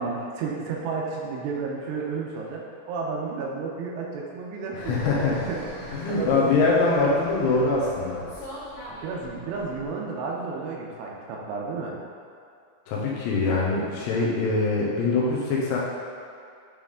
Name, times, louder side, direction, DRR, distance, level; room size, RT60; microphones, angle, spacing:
voice 1, 0.0-6.6 8.9-12.0, right 4 dB, 80° right, -2 dB, 2.8 m, -32 dB
Fixed-wing aircraft airplane, 4.7-9.9, left 1 dB, 60° left, 2.8 m, -41 dB
voice 2, 4.8-5.5 5.9-8.2 12.9-15.8, left 3 dB, 80° left, -4 dB, 2.9 m, -23 dB
9.1 x 3.4 x 3.6 m, 2.4 s
omnidirectional pair, 5.2 m